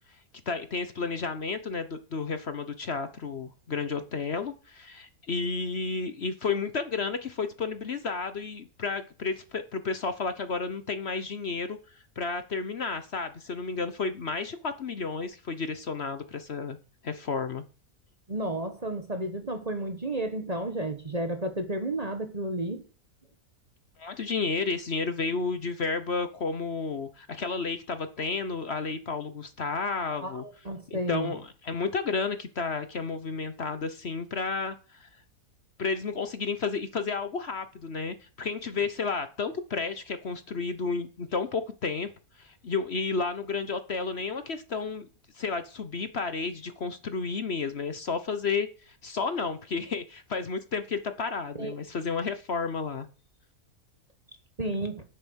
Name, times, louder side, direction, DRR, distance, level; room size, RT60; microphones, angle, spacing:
voice 1, 0.5-11.8 12.2-16.8 17.0-17.6 24.0-35.1 35.8-42.1 42.4-45.1 45.3-53.1, left 4 dB, 50° left, 1.1 m, -32 dB
voice 2, 18.3-22.8 30.2-31.3 51.6-51.7 54.6-55.0, right 1 dB, 30° right, 1.2 m, -32 dB
10.5 x 7.8 x 6.3 m
omnidirectional pair, 1.6 m